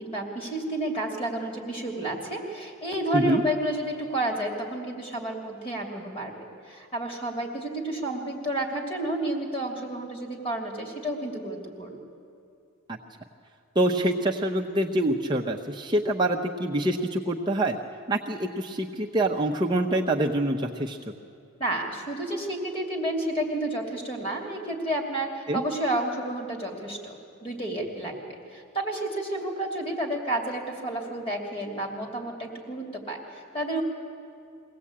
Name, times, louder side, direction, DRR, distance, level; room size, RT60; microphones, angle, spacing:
voice 1, 0.0-12.0 21.6-33.8, right 1 dB, 25° left, 1 dB, 2.8 m, -31 dB
voice 2, 13.8-17.8 18.1-21.0 25.5-25.6, right 1 dB, 20° right, 0 dB, 0.7 m, -25 dB
23.0 x 17.0 x 8.6 m, 2.5 s
head